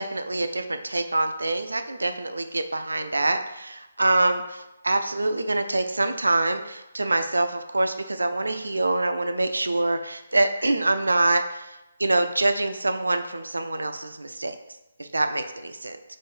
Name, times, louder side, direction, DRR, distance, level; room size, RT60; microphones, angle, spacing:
voice 1, 0.0-11.7 12.0-14.6 15.0-16.0, right 2 dB, 80° right, 8 dB, 0.4 m, -25 dB
3.7 x 2.6 x 4.3 m, 0.96 s
figure-of-eight pair, 145°, 0 cm